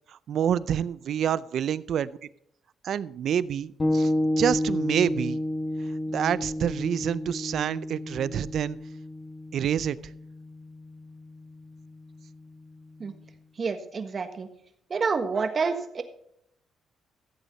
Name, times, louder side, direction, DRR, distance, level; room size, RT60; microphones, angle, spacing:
voice 1, 0.1-2.2 2.8-4.1 4.4-5.4 6.1-8.8 9.5-10.0, right 9 dB, 65° right, 19 dB, 0.5 m, -27 dB
sound 1, 3.8-13.5, left 1 dB, 25° left, 1.7 m, -31 dB
voice 2, 13.6-14.5 14.9-16.0, right 5 dB, 40° right, 8 dB, 1.4 m, -28 dB
15.0 x 8.1 x 4.1 m, 0.72 s
cardioid pair, 90°, 0 cm